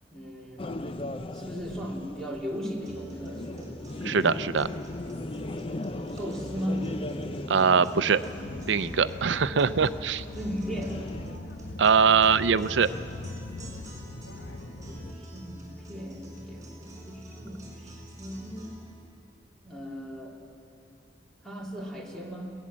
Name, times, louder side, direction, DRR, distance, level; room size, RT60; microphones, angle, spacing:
voice 1, 0.1-0.7 1.3-3.8 6.1-6.9 10.4-11.1 14.8-18.8 19.6-20.4 21.4-22.5, equal, 5° left, -2 dB, 2.8 m, -37 dB
sound 1, 0.6-11.4, left 2 dB, 30° left, 0.6 m, -38 dB
sound 2, 2.8-18.8, right 1 dB, 20° right, 5.9 m, -46 dB
voice 2, 4.0-4.7 7.5-8.2 8.7-10.2 11.8-12.9, right 6 dB, 80° right, 14 dB, 0.6 m, -22 dB
sound 3, 8.2-15.1, left 2 dB, 65° left, 1.2 m, -41 dB
22.0 x 18.0 x 7.5 m, 2.7 s
head